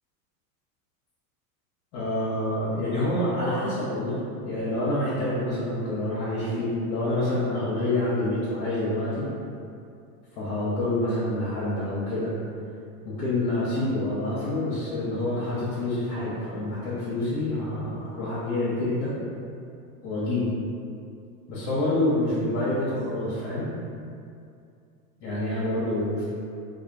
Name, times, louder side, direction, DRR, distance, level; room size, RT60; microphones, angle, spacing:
voice 1, 1.9-9.3 10.4-12.4 13.0-19.2 20.0-20.5 21.5-23.7 25.2-26.2, left 1 dB, 50° left, -9 dB, 0.7 m, -27 dB
2.2 x 2.1 x 2.6 m, 2.5 s
hypercardioid pair, 100°, 44 cm